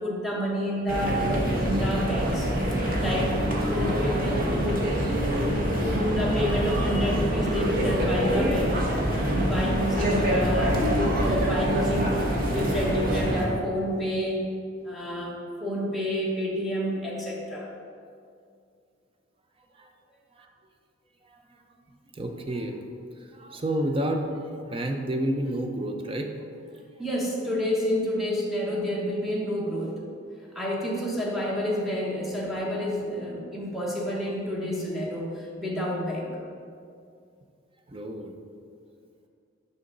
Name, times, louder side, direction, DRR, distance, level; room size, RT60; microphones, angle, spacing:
voice 1, 0.0-5.0 5.4-8.7 9.3-12.2 12.5-14.4 14.8-17.7 27.0-30.0 30.5-36.3, equal, ahead, -5 dB, 1.0 m, -29 dB
sound 1, 0.9-13.5, equal, 45° right, 1.1 m, -25 dB
voice 2, 21.2-21.6 21.9-22.8 23.2-26.3 37.9-38.3, right 1 dB, 30° right, 4 dB, 0.5 m, -30 dB
6.7 x 5.6 x 3.9 m, 2.4 s
head